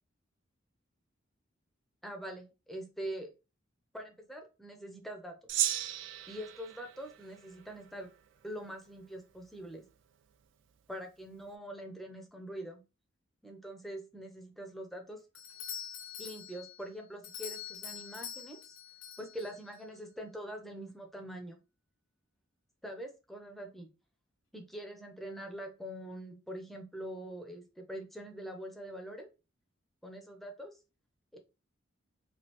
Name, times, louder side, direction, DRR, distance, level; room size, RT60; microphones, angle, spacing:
voice 1, 2.0-3.3 3.9-5.4 6.3-8.1 8.4-9.9 10.9-12.8 13.4-15.2 16.2-18.6 19.2-21.6 22.8-23.9 24.5-29.3 30.0-30.8 31.3-31.4, right 1 dB, ahead, 3 dB, 0.5 m, -44 dB
Gong, 5.5-8.1, right 13 dB, 65° right, 0.3 m, -36 dB
Doorbell, 15.4-19.8, left 8 dB, 80° left, 0.6 m, -45 dB
3.1 x 2.3 x 2.9 m, 0.30 s
head